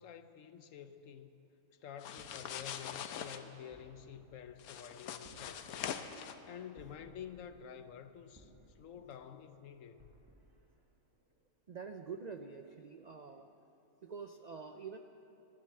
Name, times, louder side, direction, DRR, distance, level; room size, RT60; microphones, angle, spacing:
voice 1, 0.0-1.4 1.8-6.0 6.5-10.1, left 8 dB, 65° left, 10 dB, 1.0 m, -50 dB
sound 1, 2.0-3.4 4.6-6.3, left 9 dB, 85° left, 1.2 m, -43 dB
sound 2, 2.2-11.4, right 1 dB, 15° right, 1.4 m, -64 dB
voice 2, 11.7-13.5 14.0-15.0, right 5 dB, 80° right, 6 dB, 0.3 m, -46 dB
14.0 x 12.0 x 7.7 m, 2.9 s
omnidirectional pair, 1.5 m